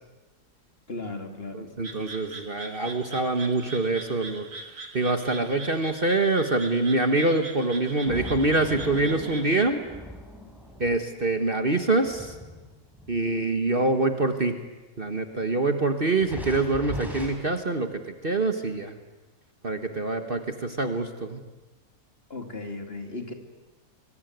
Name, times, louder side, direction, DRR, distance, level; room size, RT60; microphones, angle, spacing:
voice 1, 0.9-1.7 22.3-23.3, left 3 dB, 35° left, 5 dB, 2.9 m, -36 dB
voice 2, 1.5-9.8 10.8-12.4 13.1-14.6 15.0-18.9 19.6-21.4, right 2 dB, 35° right, 7 dB, 1.6 m, -25 dB
sound 1, 1.8-9.6, right 3 dB, 55° right, 2.6 m, -42 dB
sound 2, 8.1-13.5 14.2-14.3 16.2-17.3, equal, ahead, 5.3 m, -40 dB
25.0 x 23.5 x 9.5 m, 1.1 s
omnidirectional pair, 1.7 m